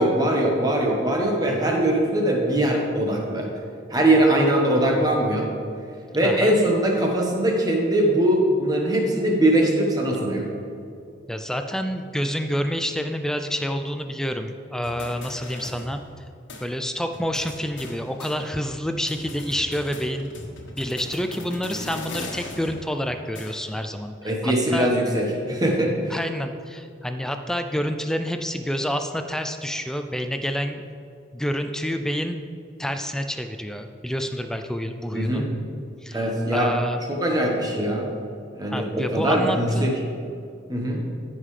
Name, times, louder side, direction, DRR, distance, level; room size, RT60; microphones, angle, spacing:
voice 1, 0.0-3.5 3.9-5.5 6.1-10.5 24.2-26.2 35.1-35.5 36.1-36.7 37.1-38.1 38.5-39.9 40.7-41.0, right 1 dB, 20° right, -1 dB, 1.2 m, -21 dB
voice 2, 1.5-1.8 6.2-6.6 11.3-16.0 16.6-20.3 20.8-24.9 26.1-30.8 31.3-32.4 32.8-35.4 36.0-37.0 38.7-39.9, equal, 5° left, 7 dB, 0.3 m, -28 dB
sound 1, 14.8-16.2 16.5-16.6 17.1-18.8 19.1-23.9, left 2 dB, 85° left, 1.3 m, -39 dB
14.0 x 5.6 x 3.3 m, 2.5 s
head